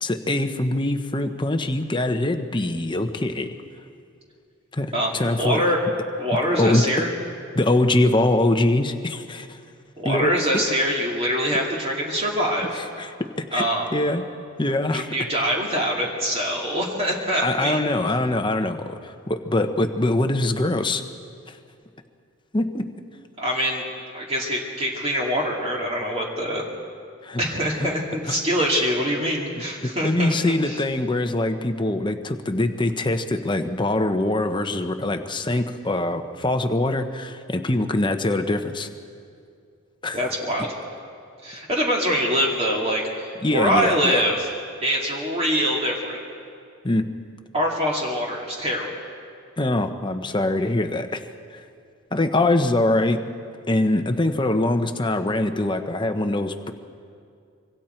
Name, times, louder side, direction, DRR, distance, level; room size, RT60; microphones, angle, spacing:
voice 1, 0.0-3.5 4.7-5.6 6.5-6.9 7.5-9.6 10.0-10.3 12.7-13.6 13.9-14.2 14.6-15.1 17.4-21.0 22.5-22.9 27.2-27.4 27.8-27.9 28.3-28.4 29.8-38.9 40.0-40.2 43.4-44.2 46.8-47.1 49.6-51.2 52.1-53.2 53.7-56.7, left 1 dB, 20° left, 7 dB, 0.9 m, -23 dB
voice 2, 5.4-5.8 6.2-7.1 10.0-12.8 13.5-13.9 14.9-17.9 23.4-23.8 24.1-26.7 27.4-30.8 40.1-40.7 41.4-44.5 44.8-46.2 47.5-48.9, equal, 30° right, -2 dB, 2.4 m, -24 dB
25.5 x 24.5 x 4.5 m, 2.3 s
head